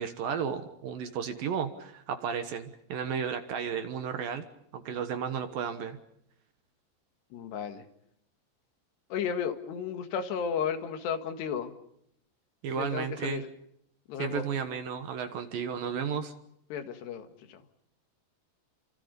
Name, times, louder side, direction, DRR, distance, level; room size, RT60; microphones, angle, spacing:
voice 1, 0.0-4.5 4.7-6.0 12.6-13.4 14.2-16.3, right 7 dB, 65° right, 8 dB, 2.6 m, -33 dB
voice 2, 7.3-7.8 9.1-11.7 12.7-13.5 14.1-14.4 16.7-17.6, left 7 dB, 70° left, 7 dB, 3.9 m, -34 dB
29.5 x 26.0 x 5.3 m, 0.73 s
omnidirectional pair, 5.2 m